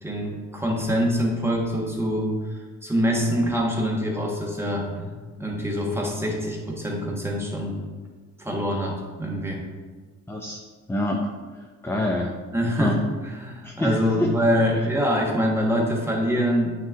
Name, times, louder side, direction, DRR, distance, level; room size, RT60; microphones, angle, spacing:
voice 1, 0.0-5.1 5.4-7.8 8.4-8.9 9.2-9.6 12.5-13.0 13.2-16.8, equal, 10° right, -2 dB, 1.5 m, -25 dB
voice 2, 10.3-10.6 10.9-12.4 12.8-13.0 13.6-14.3 14.8-14.9, left 1 dB, 10° left, 0 dB, 0.6 m, -27 dB
9.0 x 3.1 x 3.7 m, 1.4 s
cardioid pair, 90°, 30 cm